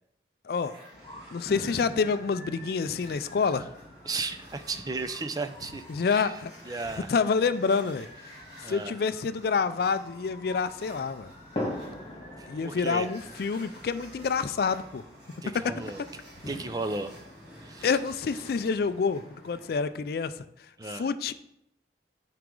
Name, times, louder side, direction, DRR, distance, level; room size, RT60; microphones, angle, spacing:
sound 1, 0.6-20.0, right 1 dB, 75° right, 2.9 m, -53 dB
sound 2, 0.9-19.9, left 1 dB, 30° left, 2.6 m, -44 dB
voice 1, 1.3-3.7 5.9-6.5 7.1-8.1 8.7-11.3 12.5-15.0 17.8-20.3 20.9-21.3, left 5 dB, 55° left, 13 dB, 0.3 m, -27 dB
voice 2, 4.0-6.4 6.7-7.1 8.6-9.0 12.4-13.1 15.4-17.1 17.6-17.9 20.8-21.1, right 3 dB, 20° right, 9 dB, 0.4 m, -35 dB
9.2 x 4.8 x 3.7 m, 0.79 s
head